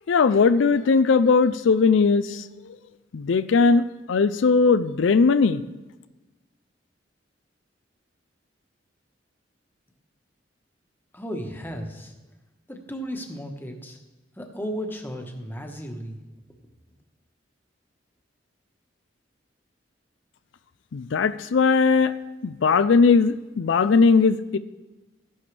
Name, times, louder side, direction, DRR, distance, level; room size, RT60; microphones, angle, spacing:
voice 1, 0.1-2.4 3.1-5.6 20.9-22.1 22.4-24.6, left 4 dB, 85° left, 13 dB, 0.4 m, -19 dB
voice 2, 11.1-12.1 12.7-14.0 14.4-16.2, equal, 10° left, 3 dB, 1.2 m, -34 dB
14.5 x 11.0 x 3.4 m, 1.1 s
head